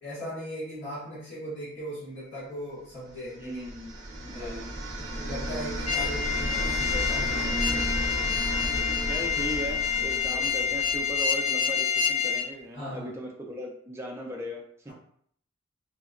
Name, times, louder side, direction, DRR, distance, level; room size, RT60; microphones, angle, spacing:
voice 1, 0.0-3.6 4.3-4.6 5.2-8.5 10.3-10.4 12.7-13.1, equal, 55° left, -11 dB, 1.1 m, -39 dB
sound 1, 3.3-11.3, right 1 dB, 55° right, 0.6 m, -33 dB
voice 2, 3.4-3.9 4.2-4.7 7.3-7.8 9.0-14.9, right 1 dB, 10° right, -2 dB, 0.4 m, -38 dB
sound 2, 5.9-12.5, left 7 dB, 75° left, 0.5 m, -28 dB
2.8 x 2.1 x 2.4 m, 0.64 s
head